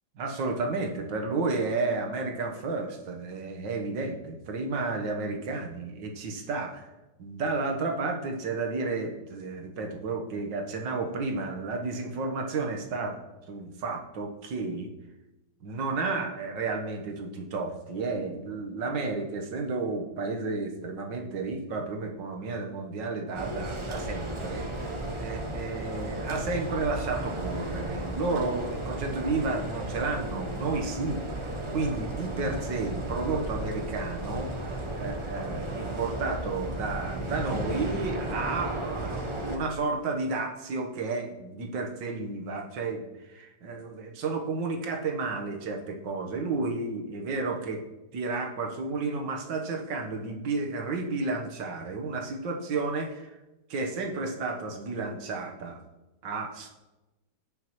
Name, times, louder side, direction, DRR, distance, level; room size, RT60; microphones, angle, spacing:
voice 1, 0.2-6.9 7.2-14.9 15.6-47.8 48.1-53.3 53.7-55.8 56.2-56.7, right 3 dB, 75° right, 2 dB, 1.8 m, -32 dB
sound 1, 23.3-39.6, right 1 dB, 35° right, 0.4 m, -34 dB
16.0 x 6.5 x 3.0 m, 1.0 s
omnidirectional pair, 1.9 m